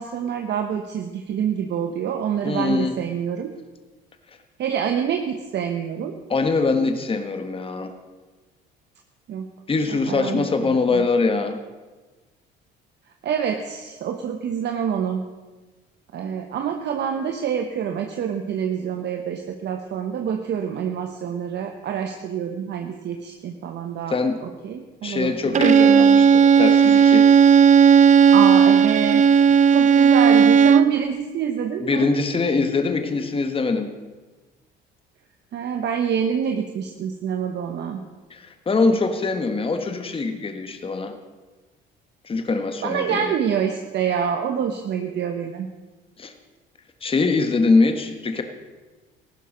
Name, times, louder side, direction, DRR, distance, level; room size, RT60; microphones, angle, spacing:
voice 1, 0.0-3.5 4.6-6.1 9.3-9.5 9.9-11.0 13.2-15.2 16.1-25.7 28.3-29.2 29.6-32.1 35.5-38.0 42.8-45.7, right 8 dB, 55° right, 5 dB, 1.1 m, -26 dB
voice 2, 2.4-3.0 6.3-7.9 9.7-11.6 24.1-24.4 25.0-27.3 31.8-33.9 38.3-41.1 42.2-43.3 46.2-46.3 47.0-48.4, left 3 dB, 25° left, 7 dB, 1.4 m, -23 dB
Bowed string instrument, 25.6-31.0, right 7 dB, 35° right, 0.5 m, -14 dB
15.0 x 12.0 x 5.2 m, 1.2 s
supercardioid pair, 90°, 21 cm